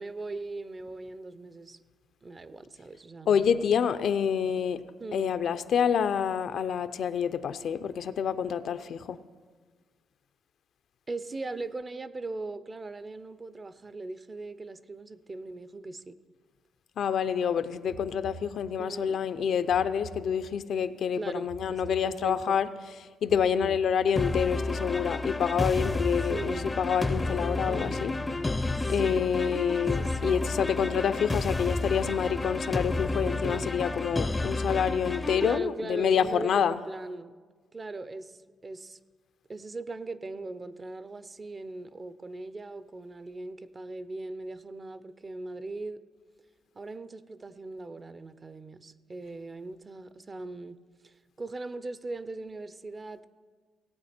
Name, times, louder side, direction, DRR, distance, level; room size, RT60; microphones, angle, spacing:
voice 1, 0.0-1.8 2.2-3.7 5.0-5.4 11.1-16.2 18.8-19.2 21.2-22.6 23.4-23.8 26.3-26.7 27.7-28.1 28.7-29.6 29.9-30.4 33.4-33.7 35.4-37.3 37.7-39.0 39.5-46.0 46.7-50.8 51.0-53.3, right 2 dB, 30° right, 14 dB, 0.6 m, -39 dB
voice 2, 3.3-4.8 5.1-9.2 17.0-22.7 23.2-28.1 28.9-36.8, left 7 dB, 65° left, 12 dB, 0.5 m, -27 dB
sound 1, 17.9-19.1 19.7-20.8 21.5-22.6 23.3-24.4, right 4 dB, 55° right, 0.8 m, -48 dB
sound 2, 24.2-35.6, left 2 dB, 15° left, 0.5 m, -31 dB
18.0 x 8.5 x 4.4 m, 1.5 s
cardioid pair, 90°, 0 cm